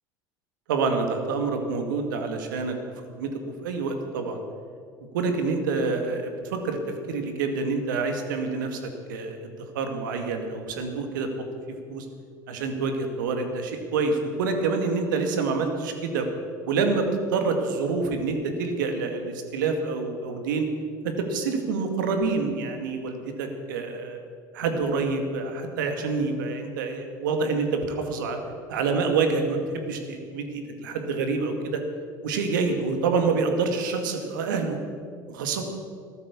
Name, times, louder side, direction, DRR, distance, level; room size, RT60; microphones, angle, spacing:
voice 1, 0.7-2.7 3.2-3.3 3.6-4.4 5.1-11.3 11.9-12.1 12.5-16.3 16.7-20.7 21.0-24.2 24.5-28.4 28.7-31.8 32.2-34.8 35.3-35.6, right 4 dB, 80° right, 5 dB, 2.2 m, -27 dB
14.5 x 13.0 x 7.3 m, 2.2 s
hypercardioid pair, 80°, 11 cm